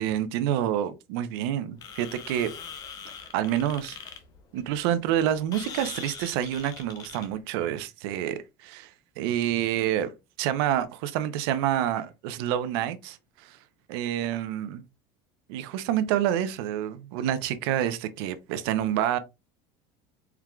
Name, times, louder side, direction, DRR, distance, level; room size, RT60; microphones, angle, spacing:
voice 1, 0.0-2.5 3.3-4.0 4.5-10.1 10.4-13.6 13.9-14.8 15.5-19.2, right 11 dB, 80° right, 0.6 m, -28 dB
sound 1, 1.8-7.4, left 6 dB, 30° left, 0.6 m, -42 dB
4.6 x 3.6 x 2.2 m
cardioid pair, 180°, 13 cm